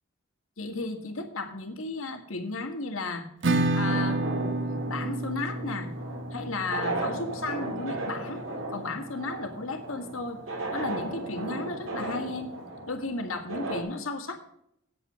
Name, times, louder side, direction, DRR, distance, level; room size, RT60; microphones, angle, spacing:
voice 1, 0.6-3.3 3.7-4.2 4.9-5.9 6.3-10.4 10.7-12.5 12.9-14.4, left 3 dB, 80° left, 6 dB, 1.8 m, -34 dB
Acoustic guitar / Strum, 3.4-8.9, right 2 dB, 60° right, 1.1 m, -30 dB
sound 1, 3.8-13.8, right 2 dB, 75° right, 3.2 m, -36 dB
9.1 x 8.6 x 6.3 m, 0.73 s
head